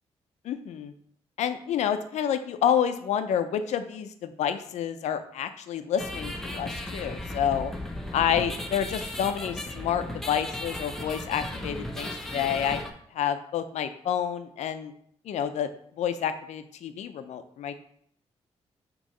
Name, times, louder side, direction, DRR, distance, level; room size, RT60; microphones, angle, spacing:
voice 1, 0.4-0.9 1.4-7.7 8.1-12.8 13.1-14.9 15.2-15.7 16.0-17.7, left 9 dB, 90° left, 10 dB, 0.5 m, -29 dB
sound 1, 6.0-12.9, left 1 dB, 5° left, 0.8 m, -36 dB
6.3 x 3.0 x 5.4 m, 0.67 s
cardioid pair, 110°, 11 cm